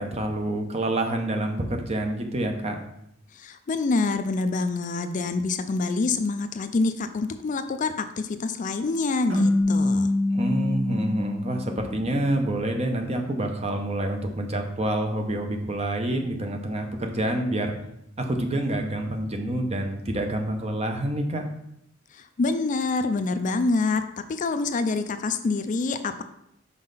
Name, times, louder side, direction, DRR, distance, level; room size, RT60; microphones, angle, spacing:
voice 1, 0.0-2.8 10.3-17.8 18.2-21.4, right 1 dB, 35° right, 4 dB, 0.8 m, -27 dB
voice 2, 3.3-10.1 22.1-24.0 24.3-26.2, left 3 dB, 40° left, 9 dB, 0.4 m, -26 dB
sound 1, 9.3-12.5, left 2 dB, 85° right, 2.8 m, -25 dB
5.6 x 5.3 x 4.0 m, 0.77 s
head